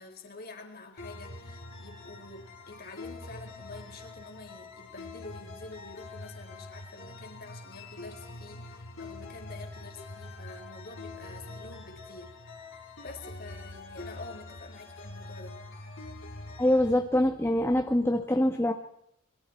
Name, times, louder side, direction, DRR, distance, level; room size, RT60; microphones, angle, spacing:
voice 1, 0.0-12.3 13.0-15.6, left 2 dB, 45° left, 2 dB, 4.9 m, -47 dB
sound 1, 1.0-17.0, left 2 dB, 65° left, 4.4 m, -44 dB
voice 2, 16.6-18.7, left 1 dB, 10° left, 5 dB, 1.3 m, -24 dB
28.5 x 23.0 x 4.5 m, 0.78 s
head